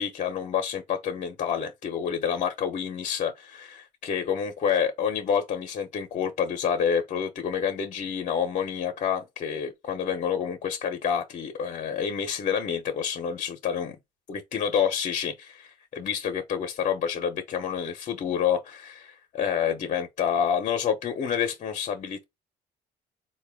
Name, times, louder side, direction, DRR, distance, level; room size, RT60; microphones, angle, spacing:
voice 1, 0.0-14.0 14.3-22.2, left 7 dB, 45° left, 0.6 m, -28 dB
3.9 x 2.2 x 3.4 m
cardioid pair, 110°, 17 cm